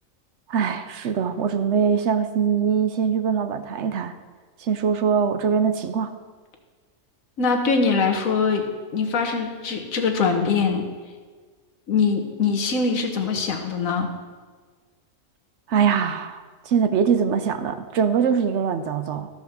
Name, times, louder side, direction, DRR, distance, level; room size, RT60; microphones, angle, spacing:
voice 1, 0.5-4.1 4.6-6.2 15.7-19.3, right 7 dB, 65° right, 10 dB, 0.9 m, -22 dB
voice 2, 7.4-8.7 8.9-10.9 11.9-14.1, left 5 dB, 85° left, 4 dB, 1.5 m, -22 dB
13.5 x 5.1 x 6.5 m, 1.5 s
omnidirectional pair, 1.4 m